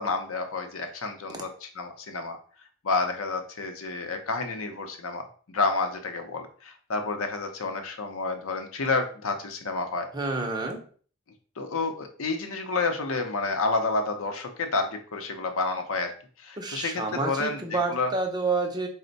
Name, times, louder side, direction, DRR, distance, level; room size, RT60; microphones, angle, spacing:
voice 1, 0.0-2.4 2.8-10.1 11.6-16.1 16.4-18.1, left 3 dB, 70° left, 5 dB, 0.7 m, -30 dB
voice 2, 10.1-10.8 16.6-18.9, right 3 dB, 20° right, 2 dB, 0.5 m, -29 dB
4.3 x 2.1 x 3.9 m, 0.43 s
head